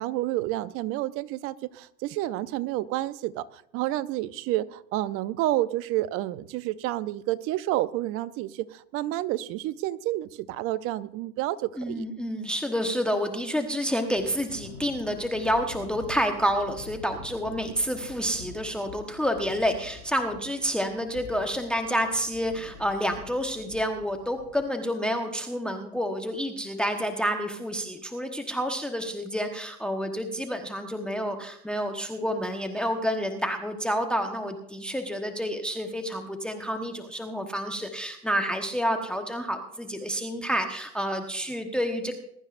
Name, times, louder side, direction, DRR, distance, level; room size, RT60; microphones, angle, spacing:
voice 1, 0.0-3.4 3.7-12.1, right 15 dB, 30° right, 17 dB, 0.6 m, -29 dB
voice 2, 11.8-42.1, equal, ahead, 5 dB, 1.2 m, -29 dB
Thunder / Rain, 14.1-24.7, left 4 dB, 65° left, 3.8 m, -46 dB
21.5 x 12.5 x 2.6 m, 0.73 s
hypercardioid pair, 110°, 47 cm